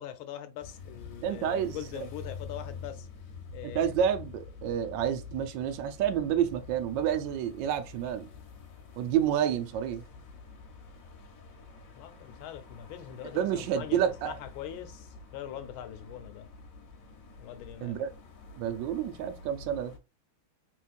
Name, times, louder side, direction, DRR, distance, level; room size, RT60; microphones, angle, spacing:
voice 1, 0.0-3.1 3.5-3.9 11.9-16.5 17.4-18.0, left 10 dB, 80° left, 1.4 m, -42 dB
sound 1, 0.6-20.0, left 5 dB, 55° left, 1.0 m, -47 dB
voice 2, 1.2-1.8 3.6-8.3 9.0-10.0 13.2-14.3 17.8-18.1 18.6-19.9, right 9 dB, 75° right, 1.1 m, -29 dB
3.4 x 3.0 x 2.4 m
omnidirectional pair, 2.3 m